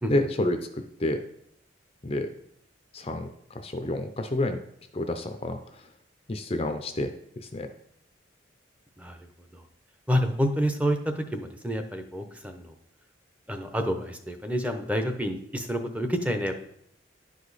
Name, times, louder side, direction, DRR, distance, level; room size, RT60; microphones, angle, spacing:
voice 1, 0.1-1.2 2.0-2.3 2.9-4.6 4.9-5.6 6.3-7.1 7.4-7.7, left 1 dB, 30° left, 7 dB, 0.5 m, -29 dB
voice 2, 9.0-9.3 9.5-9.6 10.1-12.7 13.5-16.5, equal, 5° right, 6 dB, 0.7 m, -28 dB
10.5 x 5.0 x 4.1 m, 0.73 s
head